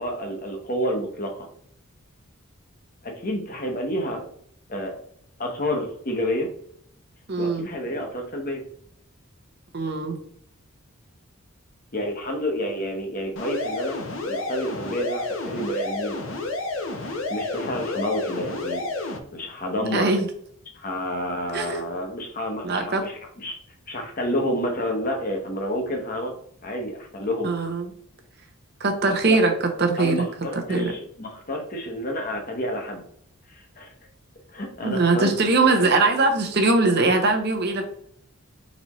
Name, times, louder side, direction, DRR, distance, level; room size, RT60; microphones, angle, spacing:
voice 1, 0.0-1.5 3.0-4.2 4.7-4.9 5.4-6.5 7.4-8.6 11.9-14.0 14.2-16.4 17.0-18.9 19.3-20.1 20.7-23.6 23.9-26.3 26.6-27.5 29.0-29.4 30.0-33.0 33.5-33.9 34.5-35.3, equal, 40° left, 2 dB, 0.9 m, -29 dB
voice 2, 7.3-7.7 9.7-10.2 19.9-20.2 21.5-21.8 22.6-23.0 27.4-27.9 28.8-29.5 29.8-30.2 30.7-30.9 34.8-37.8, right 3 dB, 50° right, 3 dB, 0.7 m, -21 dB
sound 1, 13.4-19.2, left 2 dB, 65° left, 0.8 m, -30 dB
4.2 x 4.1 x 3.0 m, 0.67 s
head